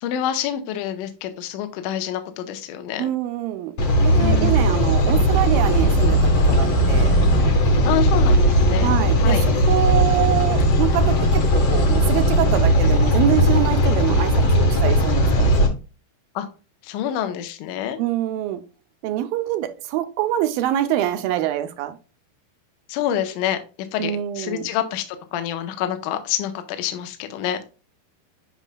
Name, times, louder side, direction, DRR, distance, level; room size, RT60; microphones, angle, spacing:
voice 1, 0.0-3.1 4.1-4.7 7.8-8.9 9.2-9.4 16.4-16.5 16.8-18.0 22.9-23.6 23.9-25.1 25.3-27.6, left 10 dB, 75° left, 8 dB, 2.1 m, -27 dB
voice 2, 3.0-3.8 4.0-6.2 6.5-7.1 8.8-15.5 18.0-18.6 19.0-22.0 24.0-24.6, right 12 dB, 80° right, 10 dB, 2.2 m, -25 dB
sound 1, 3.8-15.7, equal, 55° left, 1.8 m, -17 dB
8.3 x 5.3 x 2.2 m, 0.33 s
omnidirectional pair, 4.4 m